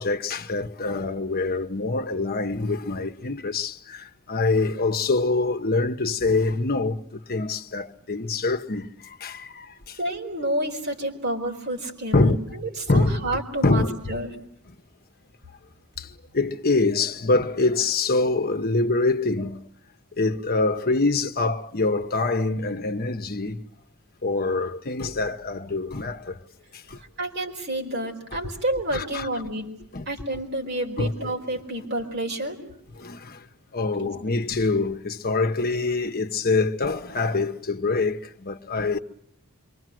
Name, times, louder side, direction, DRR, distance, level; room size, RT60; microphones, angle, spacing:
voice 1, 0.0-10.0 12.1-13.3 13.6-14.2 16.0-19.6 20.2-23.6 24.2-26.4 26.7-27.0 28.9-29.3 29.9-30.1 31.0-31.3 32.9-33.4 33.7-39.0, left 3 dB, 45° left, 1.1 m, -25 dB
voice 2, 10.0-14.3 27.2-29.7 30.1-32.6 34.0-34.1, right 1 dB, 50° right, 4.7 m, -29 dB
27.5 x 24.0 x 7.7 m
head